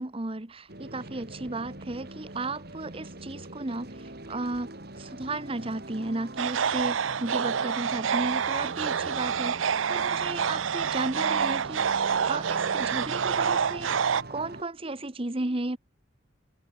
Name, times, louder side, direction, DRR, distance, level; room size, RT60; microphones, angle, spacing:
voice 1, 0.0-4.7 5.0-14.0 14.3-15.8, right 2 dB, 30° right, 1.1 m, -34 dB
sound 1, 0.7-14.6, right 1 dB, 55° right, 4.4 m, -43 dB
sound 2, 6.4-14.2, right 7 dB, 80° right, 0.6 m, -27 dB
head